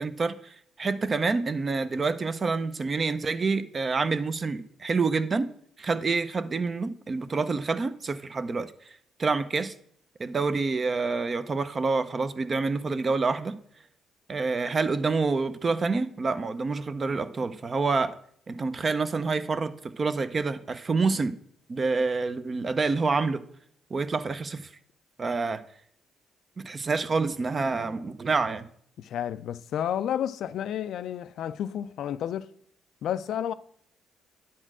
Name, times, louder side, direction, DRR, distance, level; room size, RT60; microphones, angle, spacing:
voice 1, 0.0-5.5 5.8-8.7 9.2-9.7 10.2-13.6 14.3-18.1 18.5-21.3 21.7-23.4 23.9-24.7 25.2-25.6 26.6-28.7, right 4 dB, 35° right, 0.5 m, -27 dB
voice 2, 29.0-32.5 33.0-33.5, left 10 dB, 75° left, 0.3 m, -31 dB
10.0 x 4.3 x 6.0 m
cardioid pair, 90°, 0 cm